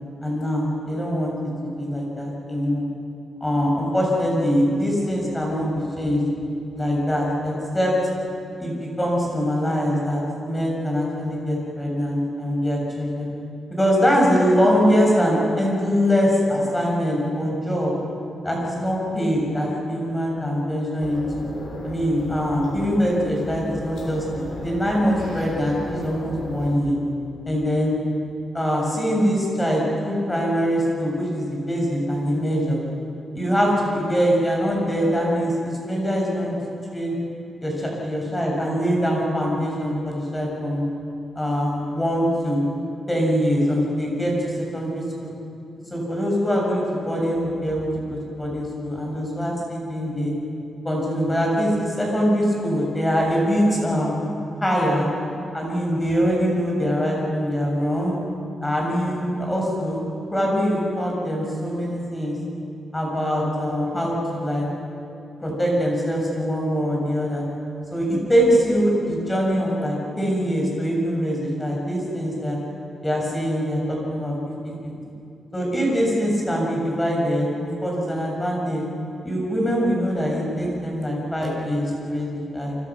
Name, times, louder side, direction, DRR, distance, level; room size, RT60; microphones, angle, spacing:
voice 1, 0.2-1.3 1.8-2.9 3.4-6.2 6.7-7.9 8.6-13.3 13.7-17.9 18.4-21.2 21.8-24.2 24.6-27.0 27.4-28.0 28.5-32.8 33.3-36.6 36.9-37.2 37.6-40.8 41.3-42.6 43.1-45.3 45.9-50.3 50.8-54.1 54.6-55.1 55.5-58.1 58.6-60.0 60.3-62.4 62.9-64.6 65.4-67.5 67.9-72.6 73.0-74.3 74.6-74.9 75.5-78.8 79.2-82.8, equal, 10° left, -2 dB, 6.8 m, -23 dB
sound 1, 21.0-26.8, left 1 dB, 75° left, 6.7 m, -36 dB
29.5 x 25.0 x 6.1 m, 2.6 s
wide cardioid pair, 145°, 0 cm